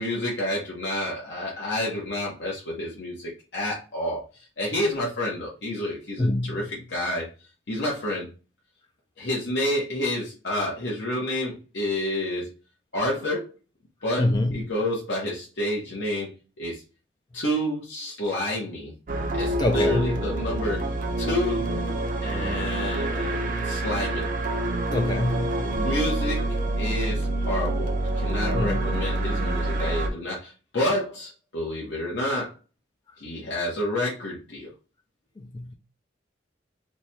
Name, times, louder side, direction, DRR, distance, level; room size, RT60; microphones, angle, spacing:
voice 1, 0.0-7.3 7.7-8.3 9.2-12.5 12.9-13.5 14.0-16.8 17.3-18.9 19.4-20.9 21.2-21.8 22.2-24.3 25.6-26.4 26.8-32.5 33.2-34.7, left 1 dB, 75° left, 1.0 m, -29 dB
voice 2, 6.2-6.7 14.2-14.7 19.6-20.2 24.9-25.8 28.5-29.0 35.4-35.7, left 1 dB, 25° left, 0.3 m, -26 dB
sound 1, 19.1-30.1, right 1 dB, 45° right, 0.6 m, -27 dB
3.3 x 2.2 x 4.3 m
head